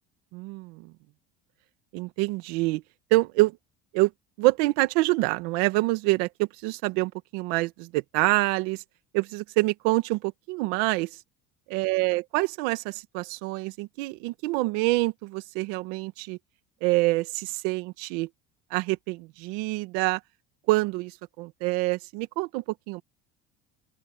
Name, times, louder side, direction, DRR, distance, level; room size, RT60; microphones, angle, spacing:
voice 1, 0.3-0.9 1.9-2.8 3.1-3.6 3.9-4.1 4.4-8.8 9.1-11.1 11.7-16.4 16.8-18.3 18.7-20.2 20.7-23.0, right 21 dB, 85° right, 1.9 m, -26 dB
open air
cardioid pair, 120°, 30 cm